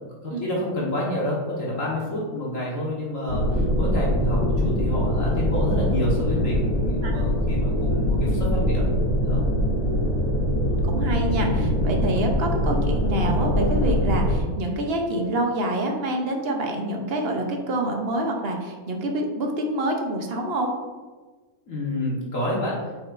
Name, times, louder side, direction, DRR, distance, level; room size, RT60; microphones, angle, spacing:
voice 1, 0.2-8.9 9.2-9.4 21.7-22.8, left 1 dB, 60° left, -5 dB, 1.7 m, -28 dB
sound 1, 3.3-14.4, equal, 85° left, 1.9 m, -23 dB
voice 2, 10.7-20.7, right 1 dB, 50° right, 2 dB, 0.9 m, -27 dB
8.5 x 4.5 x 2.5 m, 1.4 s
omnidirectional pair, 1.6 m